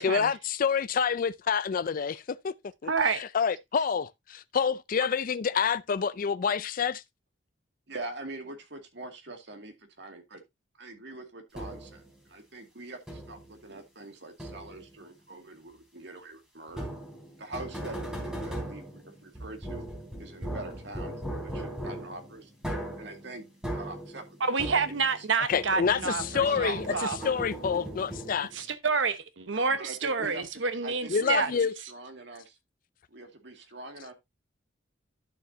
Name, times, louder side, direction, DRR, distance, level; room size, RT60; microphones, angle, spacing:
voice 1, 0.0-2.5 2.8-7.0 25.5-26.9 27.3-28.5 31.1-31.7, left 6 dB, 50° left, 0.4 m, -28 dB
voice 2, 2.9-3.2 24.4-27.2 28.5-31.5, right 5 dB, 85° right, 1.0 m, -28 dB
voice 3, 7.9-10.4 10.8-16.9 17.4-19.9 20.2-22.5 23.0-23.5 23.7-25.3 26.4-27.3 29.5-30.4 30.8-32.6 33.1-34.1, right 2 dB, 65° right, 2.1 m, -43 dB
sound 1, 11.5-12.1 13.1-13.5 14.4-14.9 16.7-25.2 25.5-28.7, right 1 dB, 5° right, 3.4 m, -38 dB
11.5 x 6.9 x 2.7 m
head